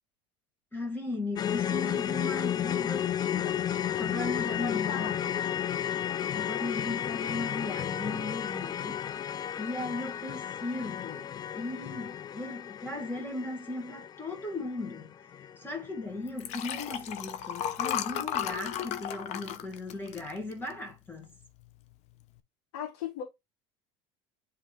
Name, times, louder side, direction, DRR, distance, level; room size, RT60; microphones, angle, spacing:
voice 1, 0.7-5.5 6.3-9.1 9.6-21.3, left 2 dB, 15° left, 2.0 m, -37 dB
sound 1, 1.4-15.6 15.8-16.0 16.4-16.5, left 10 dB, 30° left, 0.4 m, -33 dB
voice 2, 4.6-5.2 22.7-23.2, left 9 dB, 85° left, 1.6 m, -37 dB
Liquid, 16.3-20.9 21.4-21.7 21.9-22.0, left 10 dB, 55° left, 0.8 m, -34 dB
8.2 x 3.4 x 3.6 m
supercardioid pair, 105°, 13 cm